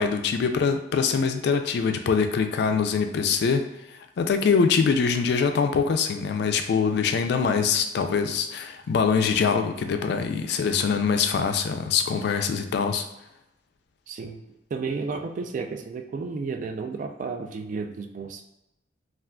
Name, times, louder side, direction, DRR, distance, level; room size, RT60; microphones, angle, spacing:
voice 1, 0.0-13.1, left 5 dB, 65° left, 7 dB, 0.3 m, -24 dB
voice 2, 14.1-14.4 14.7-18.4, right 4 dB, 45° right, 5 dB, 0.3 m, -32 dB
3.6 x 2.4 x 2.2 m, 0.90 s
head